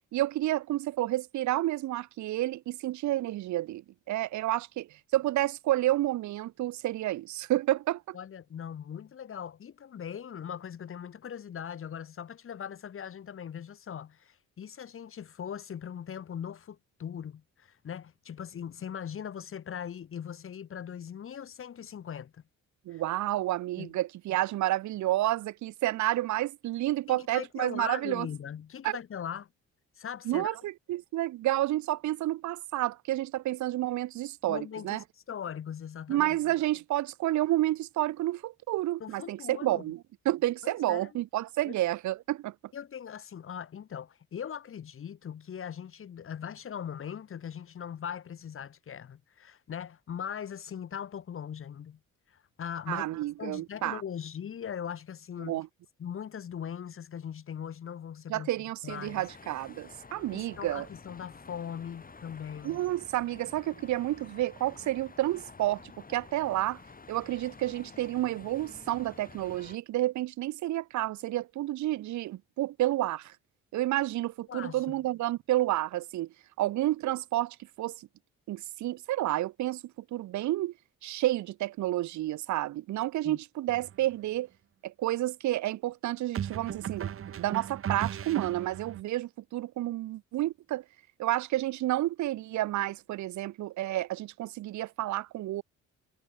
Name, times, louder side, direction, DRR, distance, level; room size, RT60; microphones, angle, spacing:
voice 1, 0.1-4.9 5.1-8.2 22.9-28.3 28.8-29.0 30.3-35.0 36.1-42.5 52.9-54.0 55.4-55.7 58.3-60.9 62.6-65.8 66.1-66.8 67.1-73.3 73.7-76.3 76.6-78.0 78.5-79.8 80.1-80.7 81.0-84.5 84.8-87.1 87.4-90.8 91.2-95.6, right 15 dB, 70° right, 0.7 m, -30 dB
voice 2, 8.1-22.4 22.9-23.0 23.8-23.9 27.1-29.5 30.0-30.6 34.5-36.4 39.0-39.8 40.6-41.1 41.6-41.7 42.7-52.0 52.3-55.5 56.0-58.5 58.8-59.3 60.3-62.8 74.5-75.0 83.2-83.4, left 8 dB, 45° left, 1.1 m, -40 dB
sound 1, 58.9-69.8, left 4 dB, 30° left, 6.9 m, -51 dB
sound 2, 83.7-83.9 86.3-89.0, right 9 dB, 45° right, 1.0 m, -36 dB
cardioid pair, 90°, 30 cm